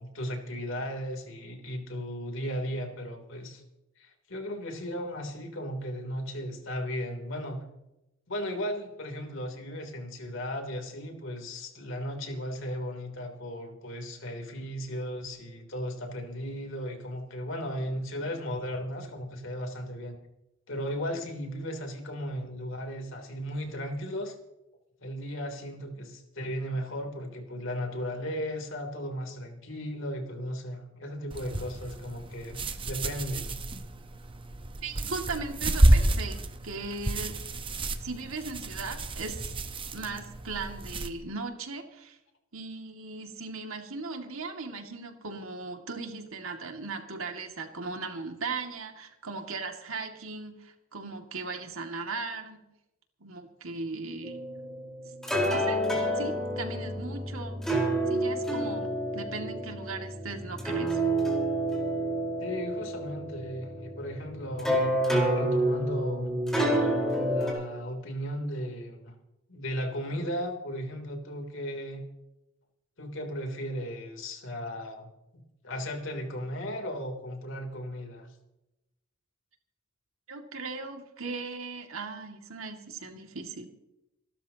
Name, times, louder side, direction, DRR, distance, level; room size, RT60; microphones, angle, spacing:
voice 1, 0.0-3.6 4.0-7.6 8.3-20.2 20.7-24.3 25.0-33.5 62.4-66.3 67.2-69.1 69.5-72.0 73.0-78.3, equal, 70° left, 3 dB, 3.3 m, -36 dB
sound 1, 31.3-41.1, right 1 dB, 25° right, 1.0 m, -29 dB
voice 2, 34.8-37.4 38.0-39.5 39.9-42.2 42.5-52.6 53.2-54.3 55.4-55.8 56.1-57.6 58.1-61.0 80.3-83.7, right 3 dB, 85° right, 3 dB, 2.3 m, -38 dB
sound 2, 54.2-67.5, right 1 dB, ahead, 4.5 m, -29 dB
28.5 x 12.5 x 2.9 m, 0.93 s
head